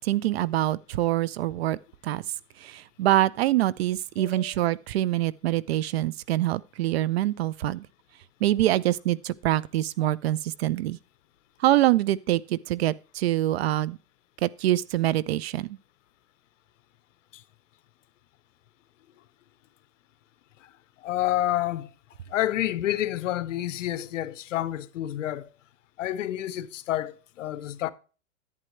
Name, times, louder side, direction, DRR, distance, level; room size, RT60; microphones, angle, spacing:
voice 1, 0.0-1.8 2.0-2.2 2.6-7.9 8.4-11.0 11.6-14.0 14.4-15.8, right 14 dB, 55° right, 0.5 m, -25 dB
voice 2, 4.2-4.5 17.3-17.4 20.6-20.7 21.0-21.9 22.3-25.5 26.0-27.9, left 13 dB, 70° left, 0.8 m, -29 dB
11.0 x 8.9 x 3.1 m
supercardioid pair, 155°, 39 cm